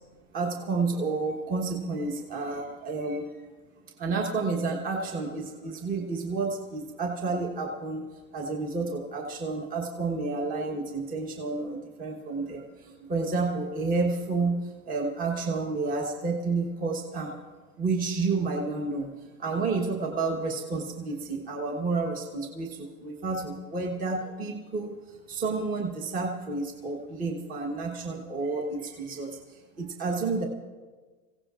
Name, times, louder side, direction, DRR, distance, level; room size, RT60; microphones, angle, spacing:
voice 1, 0.3-3.3 4.0-8.0 8.3-17.3 17.8-19.1 19.4-29.4 29.8-30.5, right 3 dB, 20° right, 1 dB, 1.2 m, -30 dB
27.0 x 16.5 x 2.5 m, 1.4 s
supercardioid pair, 160°, 43 cm